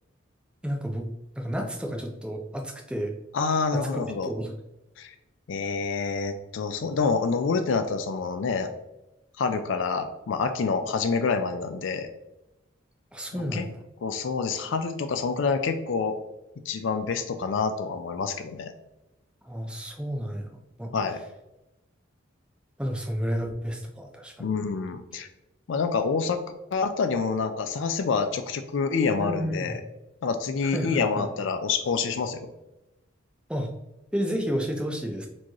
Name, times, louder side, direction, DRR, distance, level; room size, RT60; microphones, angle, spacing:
voice 1, 0.6-1.1 1.4-3.1 3.7-4.5 13.1-13.8 19.4-20.5 20.8-20.9 22.8-24.5 29.2-29.8 30.6-31.3 33.5-33.7 34.1-35.3, equal, 5° right, 2 dB, 0.4 m, -31 dB
voice 2, 3.3-4.3 5.0-5.1 5.5-8.7 9.4-12.1 13.5-13.7 14.0-16.2 16.7-18.7 20.9-21.2 24.4-25.3 25.7-26.4 26.7-29.8 30.2-32.5, left 5 dB, 70° left, 7 dB, 0.4 m, -27 dB
4.4 x 3.0 x 2.9 m, 0.94 s
head